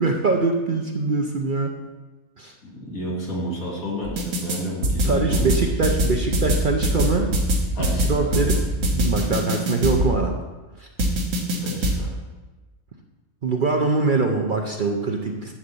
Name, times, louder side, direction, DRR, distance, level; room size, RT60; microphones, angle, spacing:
voice 1, 0.0-1.7 2.4-2.5 5.0-7.3 8.1-10.4 10.8-10.9 13.4-15.5, right 3 dB, 45° right, 2 dB, 0.7 m, -23 dB
voice 2, 2.6-5.6 7.7-8.4 11.6-12.1, equal, 80° left, -2 dB, 2.6 m, -31 dB
sound 1, 4.0-4.6 4.8-10.1 11.0-11.9, equal, 65° right, 1.6 m, -22 dB
10.5 x 4.0 x 7.0 m, 1.2 s
omnidirectional pair, 1.5 m